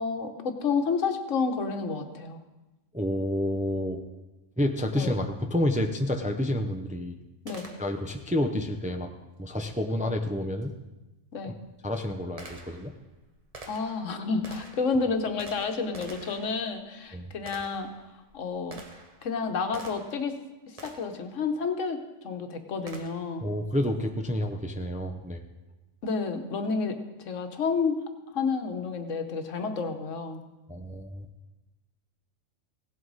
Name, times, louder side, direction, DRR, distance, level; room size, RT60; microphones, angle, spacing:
voice 1, 0.0-2.4 5.0-5.1 7.4-7.7 11.3-11.5 13.7-17.9 18.3-18.8 19.2-20.4 20.7-23.5 26.0-28.0 28.3-30.4, left 4 dB, 85° left, 6 dB, 1.4 m, -30 dB
voice 2, 2.9-4.0 4.6-7.2 7.8-9.1 9.4-10.7 11.4-11.5 11.8-12.9 17.1-17.3 23.4-25.4 30.7-31.3, left 1 dB, 10° right, 5 dB, 0.5 m, -29 dB
Gunshot gunfire, 7.5-8.3 10.6-10.7 11.4-20.3 20.8-21.3 22.9-23.4, right 2 dB, 30° right, 1.1 m, -48 dB
17.0 x 8.0 x 4.0 m, 1.1 s
omnidirectional pair, 1.3 m